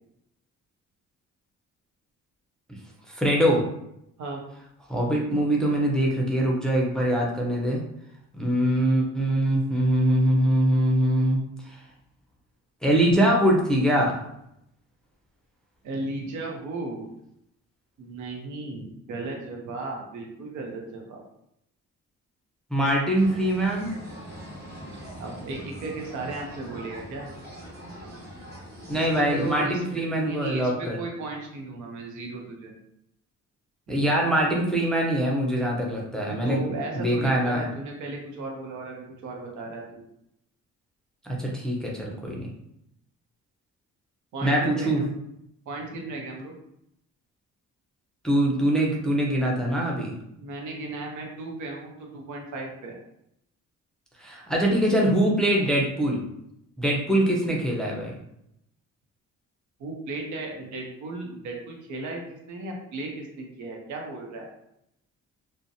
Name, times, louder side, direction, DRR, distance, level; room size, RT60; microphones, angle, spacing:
voice 1, 3.1-3.6 4.9-7.8 8.3-11.4 12.8-14.1 22.7-23.9 28.9-31.0 33.9-36.6 36.9-37.7 41.2-42.5 44.4-45.0 48.2-50.2 54.2-56.2 56.8-58.1, right 1 dB, ahead, -3 dB, 0.6 m, -23 dB
voice 2, 15.8-17.1 18.0-21.2 25.2-27.3 28.9-32.7 33.9-34.1 36.3-40.0 44.3-45.1 45.7-46.5 50.4-53.0 59.8-64.5, right 2 dB, 75° right, 0 dB, 0.7 m, -35 dB
sound 1, 23.1-29.6, equal, 35° right, 1.3 m, -42 dB
2.5 x 2.1 x 2.6 m, 0.78 s
cardioid pair, 90°, 30 cm